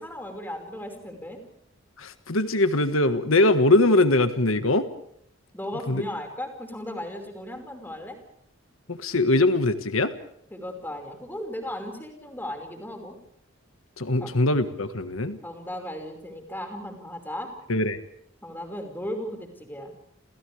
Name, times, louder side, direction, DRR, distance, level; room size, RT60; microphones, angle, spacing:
voice 1, 0.0-1.4 5.5-8.2 10.5-13.2 14.2-14.3 15.4-17.5 18.4-19.9, left 1 dB, 10° left, 4 dB, 5.4 m, -36 dB
voice 2, 2.0-4.9 5.9-6.0 8.9-10.1 14.0-15.4 17.7-18.0, left 2 dB, 85° left, 9 dB, 1.7 m, -22 dB
30.0 x 30.0 x 3.5 m, 0.71 s
head